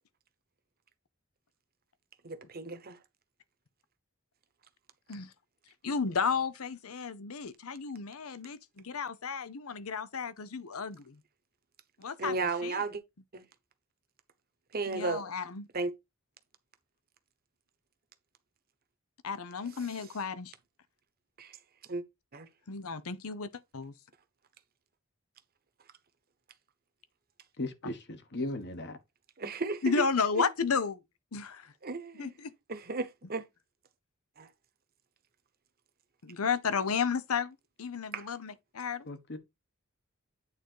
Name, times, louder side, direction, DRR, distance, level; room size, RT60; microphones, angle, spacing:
voice 1, 2.2-3.0 12.2-13.0 13.3-13.4 14.7-15.3 15.7-15.9 21.4-21.6 21.9-22.0 22.3-22.5 29.4-30.0 30.4-30.5 31.8-32.3 32.7-33.5 34.4-34.5 38.1-38.3, right 3 dB, 45° right, 1.1 m, -34 dB
voice 2, 5.8-11.2 12.0-12.3 12.6-12.8 14.9-15.7 19.2-20.5 22.7-23.9 29.8-31.0 31.3-31.7 32.1-32.5 36.2-39.1, left 5 dB, 80° left, 0.8 m, -33 dB
voice 3, 27.6-29.0 39.1-39.4, left 1 dB, 50° left, 1.4 m, -37 dB
8.9 x 3.9 x 4.6 m
head